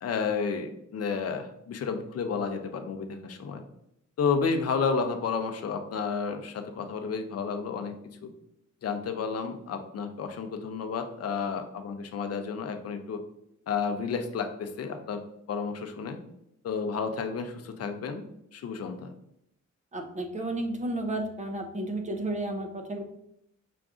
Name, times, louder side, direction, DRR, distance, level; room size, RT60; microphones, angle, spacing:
voice 1, 0.0-3.6 4.2-7.9 8.2-8.3 8.8-13.2 13.7-15.2 15.5-16.2 16.6-18.3 18.5-19.1, left 5 dB, 55° left, 6 dB, 0.6 m, -31 dB
voice 2, 19.9-23.0, right 1 dB, 25° right, 4 dB, 0.6 m, -32 dB
5.8 x 2.5 x 3.6 m, 0.77 s
wide cardioid pair, 170°, 31 cm